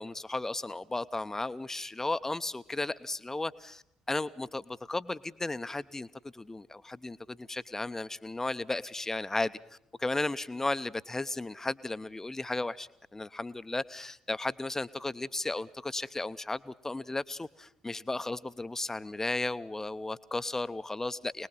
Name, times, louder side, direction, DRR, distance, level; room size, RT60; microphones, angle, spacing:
voice 1, 0.0-21.5, left 2 dB, 15° left, 14 dB, 0.8 m, -35 dB
25.0 x 20.0 x 5.8 m, 0.73 s
figure-of-eight pair, 45°, 3 cm